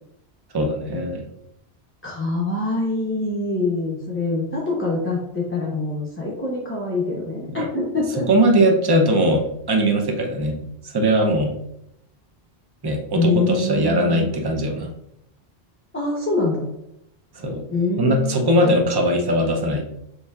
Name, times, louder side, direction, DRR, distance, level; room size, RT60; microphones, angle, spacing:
voice 1, 0.5-1.2 7.5-7.7 8.3-10.6 10.8-11.5 12.8-14.9 17.3-17.7 18.0-19.8, right 1 dB, 30° right, 3 dB, 0.6 m, -20 dB
voice 2, 2.0-8.3 13.1-14.3 15.9-16.7 17.7-18.5, left 2 dB, 15° left, -4 dB, 0.8 m, -24 dB
6.9 x 3.3 x 2.4 m, 0.78 s
omnidirectional pair, 1.1 m